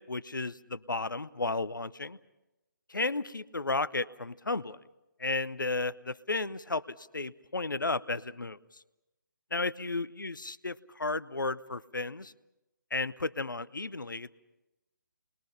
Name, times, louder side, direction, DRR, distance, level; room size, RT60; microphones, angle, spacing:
voice 1, 0.0-2.2 2.9-4.8 5.2-8.6 9.5-12.3 12.9-14.3, left 3 dB, 80° left, 17 dB, 0.8 m, -33 dB
29.0 x 21.0 x 5.6 m, 0.99 s
figure-of-eight pair, 145°, 11 cm